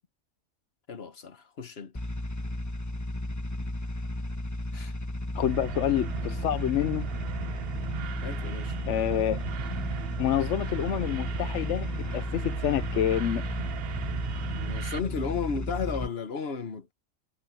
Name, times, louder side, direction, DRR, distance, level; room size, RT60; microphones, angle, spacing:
voice 1, 0.9-1.9 4.7-4.9 8.2-8.7 14.5-16.9, left 5 dB, 50° left, 1.5 m, -34 dB
sound 1, 1.9-16.1, left 1 dB, 15° left, 1.3 m, -34 dB
voice 2, 5.3-7.1 8.9-9.4 10.2-13.4, left 11 dB, 70° left, 1.0 m, -28 dB
sound 2, 5.4-15.0, right 10 dB, 55° right, 0.8 m, -37 dB
omnidirectional pair, 1.3 m